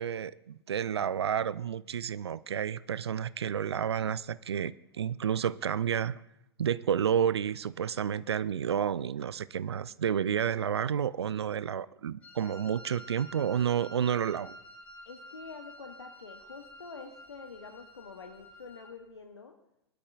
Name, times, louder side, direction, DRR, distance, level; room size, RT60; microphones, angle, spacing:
voice 1, 0.0-6.2 6.6-14.6, right 8 dB, 75° right, 0.4 m, -30 dB
Wind instrument woodwind instrument, 12.2-18.9, left 1 dB, 10° left, 4.7 m, -50 dB
voice 2, 15.1-19.6, left 4 dB, 80° left, 0.9 m, -47 dB
21.5 x 12.5 x 2.4 m
figure-of-eight pair, 95°, 14 cm